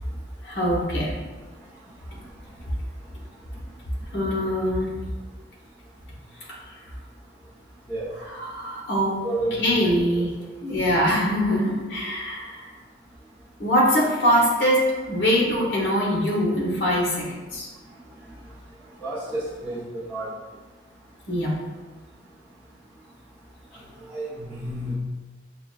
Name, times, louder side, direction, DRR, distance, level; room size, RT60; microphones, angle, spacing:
voice 1, 0.4-1.1 4.1-4.9 6.5-6.8 8.1-9.2 9.6-10.3 10.6-12.7 13.6-17.7 21.3-21.6, equal, 70° left, -4 dB, 1.1 m, -23 dB
voice 2, 9.2-9.6 19.0-19.8 20.1-20.3 24.1-25.0, right 1 dB, 10° left, -10 dB, 0.8 m, -30 dB
6.0 x 2.2 x 2.4 m, 1.3 s
head